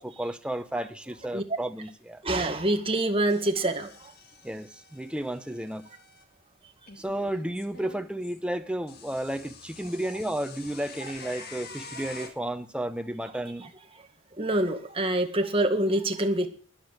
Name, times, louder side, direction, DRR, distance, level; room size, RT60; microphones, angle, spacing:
voice 1, 0.0-2.2 4.4-5.9 7.0-13.7, right 1 dB, 5° right, 0.8 m, -33 dB
voice 2, 2.2-3.9 11.5-11.6 14.4-16.5, right 1 dB, 25° right, 1.7 m, -25 dB
sound 1, 3.3-6.2 6.9-8.4 8.9-12.3, left 4 dB, 45° left, 1.8 m, -47 dB
13.5 x 10.0 x 6.6 m
head